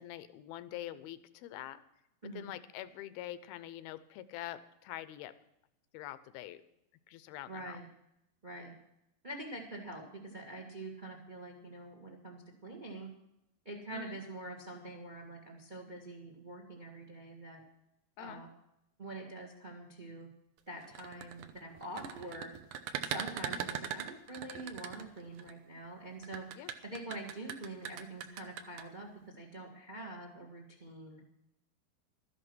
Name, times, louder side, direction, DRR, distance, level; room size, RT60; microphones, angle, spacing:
voice 1, 0.0-1.8 2.3-5.3 5.9-6.6 7.1-7.8 13.9-14.2 18.2-18.4 23.5-23.7 26.6-26.7, left 13 dB, 80° left, 14 dB, 2.6 m, -45 dB
voice 2, 7.5-7.9 8.4-8.7 9.2-13.1 13.6-17.6 18.2-18.5 19.0-20.3 20.7-22.5 23.0-29.1 29.4-31.2, right 2 dB, 45° right, 2 dB, 0.6 m, -45 dB
sound 1, 20.8-25.5 26.2-28.8, right 9 dB, 70° right, 2.1 m, -40 dB
13.5 x 11.0 x 6.2 m, 0.82 s
omnidirectional pair, 4.4 m